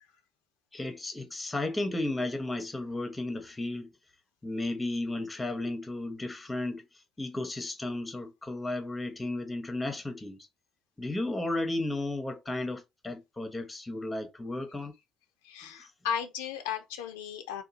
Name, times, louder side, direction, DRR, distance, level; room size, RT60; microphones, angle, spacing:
voice 1, 0.7-3.9 4.4-6.8 7.2-10.5 11.0-14.9 15.8-15.9, left 2 dB, 15° left, 0.7 m, -34 dB
voice 2, 15.4-17.6, left 8 dB, 80° left, 0.4 m, -35 dB
2.8 x 2.2 x 2.5 m
hypercardioid pair, 60°, 0 cm